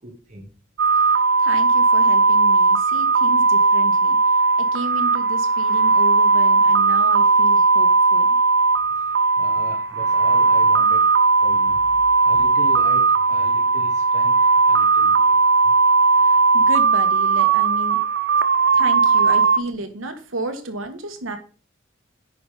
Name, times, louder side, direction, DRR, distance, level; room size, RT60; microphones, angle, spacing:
voice 1, 0.0-0.5 8.9-14.4 14.6-15.7 18.6-18.7, right 1 dB, 35° right, 0 dB, 1.5 m, -39 dB
sound 1, 0.8-19.6, right 4 dB, 60° right, 0.6 m, -17 dB
voice 2, 1.0-8.4 16.2-18.0 18.7-21.4, right 2 dB, 75° right, 5 dB, 1.6 m, -32 dB
9.3 x 5.5 x 5.0 m, 0.38 s
head